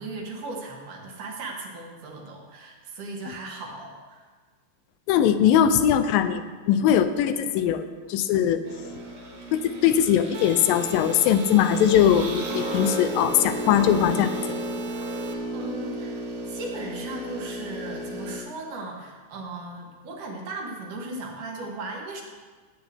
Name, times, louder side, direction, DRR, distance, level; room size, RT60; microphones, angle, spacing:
voice 1, 0.0-4.3 14.9-15.0 15.5-16.2 16.5-22.2, right 2 dB, 70° right, 0 dB, 2.8 m, -37 dB
voice 2, 5.1-8.6 9.5-14.3, left 9 dB, 85° left, 10 dB, 2.3 m, -21 dB
sound 1, 8.6-18.4, equal, 50° right, 1.9 m, -34 dB
sound 2, 10.3-15.3, right 9 dB, 85° right, 1.6 m, -39 dB
17.0 x 8.2 x 3.4 m, 1.4 s
omnidirectional pair, 4.0 m